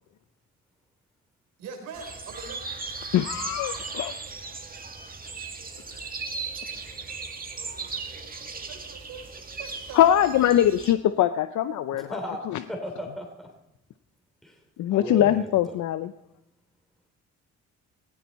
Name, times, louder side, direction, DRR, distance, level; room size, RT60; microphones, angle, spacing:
voice 1, 1.6-2.6 7.7-10.6, right 5 dB, 90° right, 5 dB, 3.7 m, -43 dB
sound 1, 1.9-10.9, right 4 dB, 30° right, 1.8 m, -37 dB
voice 2, 3.1-4.1 10.0-12.1 14.8-16.1, left 11 dB, 75° left, 11 dB, 0.7 m, -22 dB
voice 3, 11.9-13.5 14.4-14.6 14.9-15.8, equal, ahead, 1 dB, 3.2 m, -37 dB
19.5 x 16.0 x 4.2 m, 0.83 s
cardioid pair, 90°, 30 cm